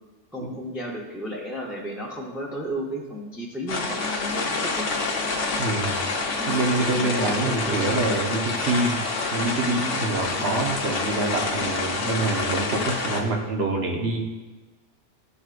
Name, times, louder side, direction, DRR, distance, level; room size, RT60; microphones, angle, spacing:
voice 1, 0.3-4.9 6.4-6.6 6.9-8.0 10.4-10.5, right 1 dB, ahead, -4 dB, 0.7 m, -34 dB
sound 1, 3.7-13.2, left 3 dB, 80° left, 1.2 m, -27 dB
voice 2, 5.6-6.0 6.5-9.0 9.3-14.3, right 2 dB, 60° right, 1 dB, 1.2 m, -26 dB
12.5 x 4.6 x 2.5 m, 1.2 s
omnidirectional pair, 1.2 m